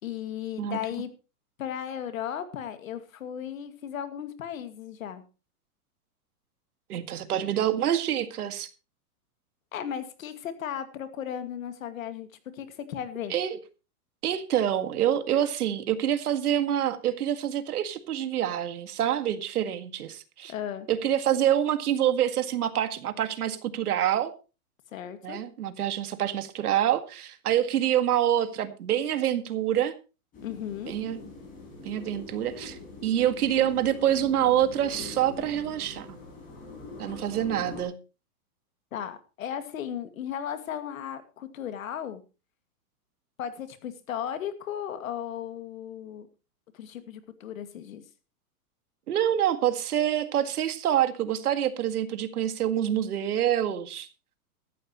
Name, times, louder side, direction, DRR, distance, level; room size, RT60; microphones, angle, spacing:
voice 1, 0.0-1.1 1.6-5.2 9.7-12.3 12.5-13.3 20.4-20.9 24.9-25.4 30.4-30.9 38.9-42.2 43.4-46.3 46.7-48.0, left 9 dB, 65° left, 2.3 m, -35 dB
voice 2, 6.9-8.7 13.3-13.6 14.2-20.5 20.9-24.3 25.2-29.9 30.9-31.2 31.8-36.1 37.0-37.9 49.1-54.1, right 10 dB, 80° right, 2.0 m, -26 dB
sound 1, 30.3-37.8, left 3 dB, 20° left, 5.3 m, -43 dB
16.0 x 14.0 x 3.0 m
supercardioid pair, 180°, 44 cm